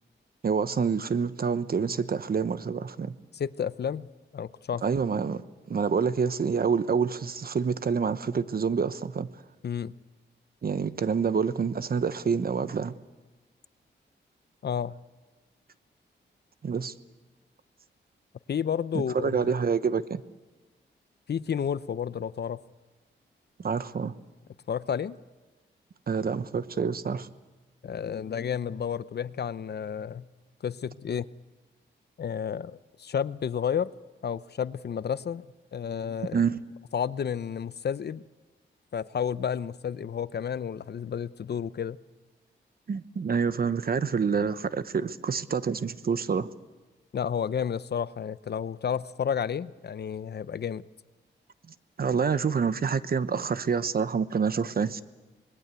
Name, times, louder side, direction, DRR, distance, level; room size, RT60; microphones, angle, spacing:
voice 1, 0.4-3.2 4.8-5.4 5.7-9.3 10.6-12.9 16.6-16.9 19.1-20.2 23.6-24.1 26.1-27.3 36.3-36.6 42.9-46.5 52.0-55.0, right 6 dB, 50° right, 1.1 m, -27 dB
voice 2, 3.3-4.1 4.3-4.8 9.6-10.0 14.6-15.0 18.5-19.5 21.3-22.6 24.7-25.2 27.8-30.3 30.6-31.3 32.2-33.9 34.2-35.4 35.7-36.4 36.9-38.2 38.9-42.0 47.1-50.8, left 8 dB, 60° left, 0.8 m, -31 dB
26.0 x 20.5 x 8.3 m
cardioid pair, 75°, 19 cm